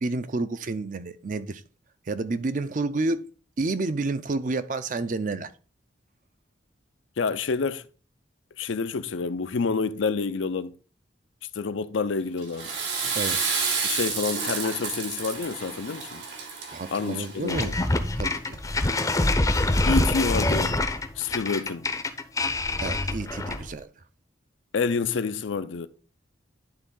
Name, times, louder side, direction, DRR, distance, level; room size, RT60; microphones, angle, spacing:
voice 1, 0.0-1.6 2.1-3.2 3.6-5.5 13.2-13.4 16.7-17.7 18.2-18.6 22.8-23.9, right 3 dB, 45° right, 0.5 m, -29 dB
voice 2, 7.2-7.8 8.6-10.7 11.5-12.7 13.8-16.2 16.9-17.7 19.9-20.8 21.2-21.9 24.7-25.9, left 4 dB, 85° left, 0.5 m, -28 dB
Water / Toilet flush, 12.4-17.6, right 5 dB, 75° right, 1.9 m, -30 dB
sound 1, 17.5-23.7, left 2 dB, 15° left, 0.5 m, -25 dB
10.5 x 3.6 x 3.8 m
head